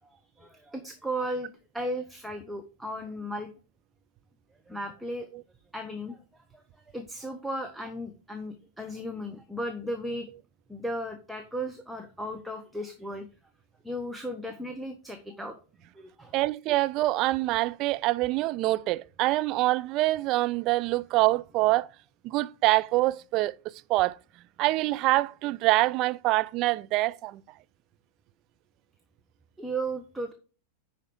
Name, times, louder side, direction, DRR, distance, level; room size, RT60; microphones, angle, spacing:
voice 1, 0.1-3.5 4.7-5.3 5.7-6.2 6.5-6.6 6.9-10.3 10.7-13.3 13.8-15.6 15.9-16.4 29.6-30.3, right 1 dB, 5° right, 0.9 m, -35 dB
voice 2, 16.3-21.9 22.2-23.5 23.9-24.2 24.6-27.4, right 19 dB, 40° right, 0.4 m, -25 dB
10.0 x 4.6 x 4.6 m
figure-of-eight pair, 90°, 0 cm